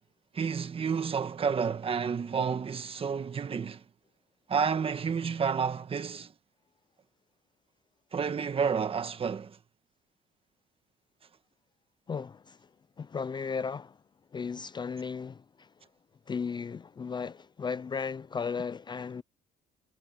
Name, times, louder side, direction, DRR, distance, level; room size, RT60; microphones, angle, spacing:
voice 1, 0.3-3.8 4.5-6.3 8.1-9.6, right 6 dB, 35° right, 1.5 m, -30 dB
voice 2, 12.1-12.7 13.0-14.0 14.3-15.7 16.3-19.2, left 5 dB, 25° left, 0.5 m, -35 dB
cardioid pair, 110°, 17 cm